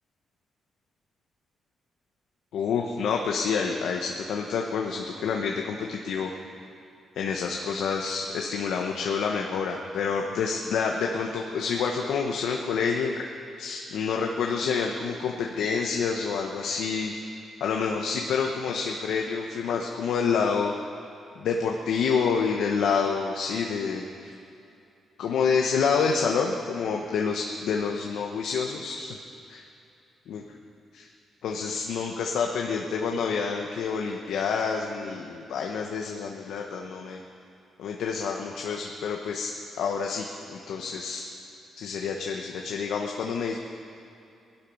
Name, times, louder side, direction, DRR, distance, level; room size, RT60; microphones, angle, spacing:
voice 1, 2.5-6.3 7.2-13.3 13.6-17.2 17.6-20.7 21.4-24.3 25.2-29.2 30.3-30.4 31.4-37.2 37.8-39.5 39.8-41.3 41.8-43.6, left 5 dB, 80° left, 1 dB, 1.1 m, -28 dB
19.0 x 12.0 x 5.5 m, 2.7 s
cardioid pair, 110°, 0 cm